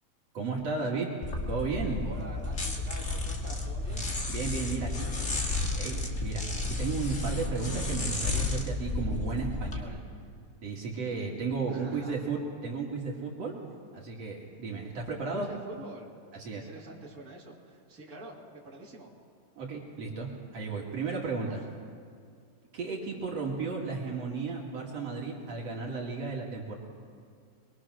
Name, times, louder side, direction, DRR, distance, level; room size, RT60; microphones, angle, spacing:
voice 1, 0.3-1.1 1.5-2.0 4.3-5.1 5.7-10.0 10.6-13.5 13.9-15.5 16.4-16.7 19.6-21.6 22.7-26.7, right 4 dB, 60° right, -2 dB, 3.3 m, -34 dB
sound 1, 1.2-9.8, left 2 dB, 30° left, 1.9 m, -32 dB
voice 2, 2.0-4.1 4.5-5.4 11.7-12.2 15.1-16.2 16.5-19.1 21.0-21.7, right 1 dB, 30° right, -4 dB, 3.2 m, -47 dB
23.5 x 22.5 x 6.3 m, 2.3 s
omnidirectional pair, 3.4 m